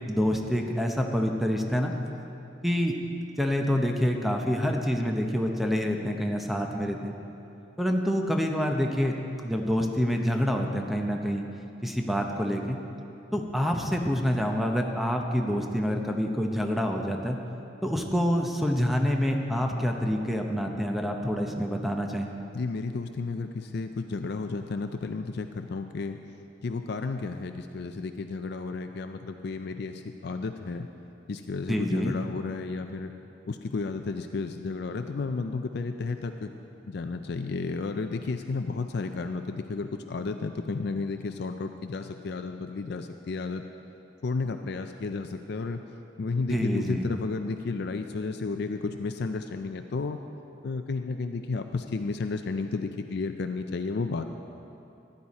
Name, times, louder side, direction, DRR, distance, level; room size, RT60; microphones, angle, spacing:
voice 1, 0.1-1.9 2.6-2.9 3.4-7.1 7.8-9.2 9.4-11.4 11.8-12.8 13.3-17.4 17.8-22.3 31.7-32.1 46.5-47.0, equal, ahead, 2 dB, 0.7 m, -27 dB
voice 2, 22.5-26.2 26.6-30.9 31.3-33.1 33.5-36.5 36.9-43.6 44.2-45.8 46.2-50.2 50.6-54.3, left 4 dB, 60° left, 7 dB, 0.4 m, -32 dB
14.5 x 10.5 x 4.2 m, 2.8 s
head